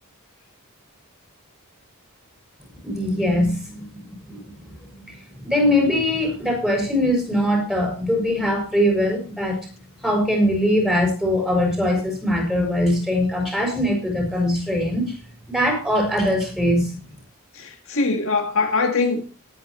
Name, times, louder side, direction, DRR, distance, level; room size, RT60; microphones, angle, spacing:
voice 1, 2.8-3.8 4.3-4.4 5.0-5.1 5.4-9.6 10.0-15.1 15.5-17.0, left 1 dB, 5° right, 6.4 m, -21 dB
voice 2, 17.5-19.2, left 3 dB, 65° left, 1.9 m, -22 dB
20.0 x 9.4 x 3.2 m
head